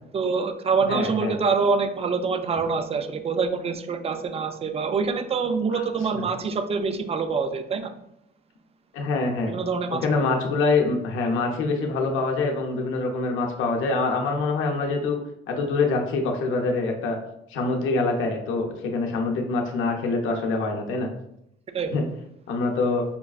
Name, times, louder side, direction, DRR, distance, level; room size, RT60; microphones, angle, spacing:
voice 1, 0.1-7.9 9.5-10.3 21.7-21.9, right 5 dB, 30° right, 8 dB, 0.4 m, -25 dB
voice 2, 0.9-1.4 5.7-5.8 6.1-6.2 8.9-9.5 10.0-15.2 15.5-17.2 17.5-21.1 21.9-22.0 22.5-23.0, left 3 dB, 85° left, 2 dB, 0.6 m, -25 dB
5.2 x 2.4 x 2.3 m, 0.79 s
cardioid pair, 90°, 20 cm